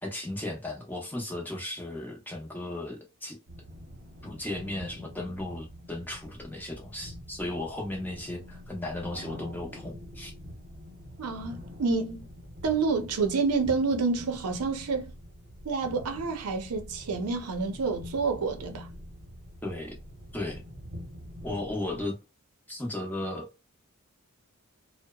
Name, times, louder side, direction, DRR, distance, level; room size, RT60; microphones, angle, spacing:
voice 1, 0.0-3.4 4.2-10.3 19.6-20.0 20.3-20.6 21.4-22.2 22.7-23.5, left 1 dB, 10° left, 0.6 m, -35 dB
sound 1, 3.5-22.1, equal, 50° right, 0.9 m, -45 dB
voice 2, 11.2-12.3 12.6-15.1 15.6-18.9, right 4 dB, 85° right, 0.6 m, -28 dB
2.8 x 2.1 x 2.2 m
head